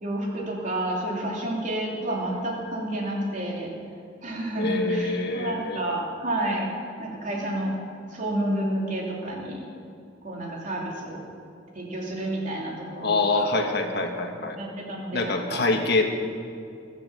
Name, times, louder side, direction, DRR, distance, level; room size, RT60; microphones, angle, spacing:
voice 1, 0.0-3.7 4.2-6.7 7.0-7.7 8.1-9.7 10.2-11.2 11.7-13.1 13.4-13.5 14.3-15.6, right 1 dB, 45° right, -3 dB, 3.2 m, -30 dB
voice 2, 4.6-6.0 13.0-14.6 15.1-16.0, left 3 dB, 60° left, 3 dB, 1.7 m, -25 dB
20.0 x 7.5 x 7.6 m, 2.5 s
head